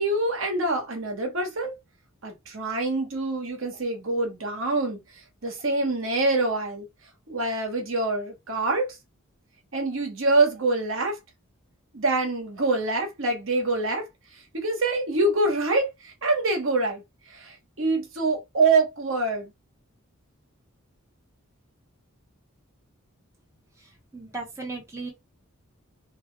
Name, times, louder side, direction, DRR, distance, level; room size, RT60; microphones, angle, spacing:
voice 1, 0.0-1.7 2.2-5.0 5.4-6.9 7.3-9.0 9.7-11.2 11.9-14.1 14.5-17.0 17.3-19.5, right 2 dB, 65° right, 1.2 m, -25 dB
voice 2, 24.1-25.1, right 3 dB, 15° right, 0.7 m, -35 dB
2.8 x 2.1 x 3.7 m
head